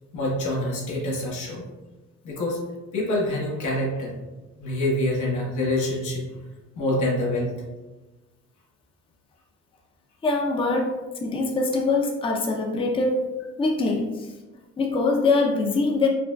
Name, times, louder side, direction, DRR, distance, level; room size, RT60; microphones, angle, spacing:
voice 1, 0.1-1.6 2.2-2.6 2.9-4.1 4.6-6.2 6.7-7.5, left 1 dB, 80° left, -4 dB, 1.1 m, -26 dB
voice 2, 10.2-13.3 13.6-14.3 14.8-16.1, left 3 dB, 20° left, 0 dB, 0.5 m, -23 dB
4.8 x 2.2 x 2.2 m, 1.1 s
cardioid pair, 90°, 30 cm